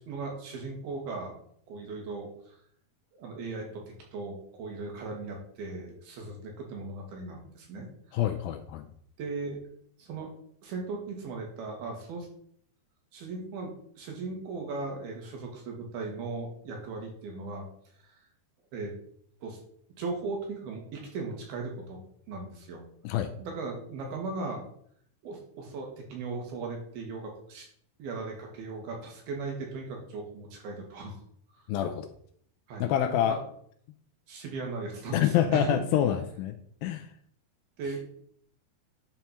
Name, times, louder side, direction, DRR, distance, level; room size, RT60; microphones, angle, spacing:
voice 1, 0.0-1.3 1.7-2.6 3.2-3.8 4.1-7.9 9.2-9.6 10.0-10.3 10.6-12.3 13.1-17.7 18.7-18.9 19.4-19.6 20.0-22.0 22.3-22.8 23.4-24.7 25.2-27.7 28.0-31.2 32.7-32.9 33.3-33.4 34.3-35.8 37.8-38.0, right 3 dB, 70° right, 1 dB, 3.9 m, -37 dB
voice 2, 8.1-8.9 23.0-23.3 31.7-32.1 32.8-33.4 35.1-37.1, left 10 dB, 80° left, 8 dB, 2.2 m, -27 dB
11.0 x 4.6 x 5.7 m, 0.64 s
omnidirectional pair, 4.6 m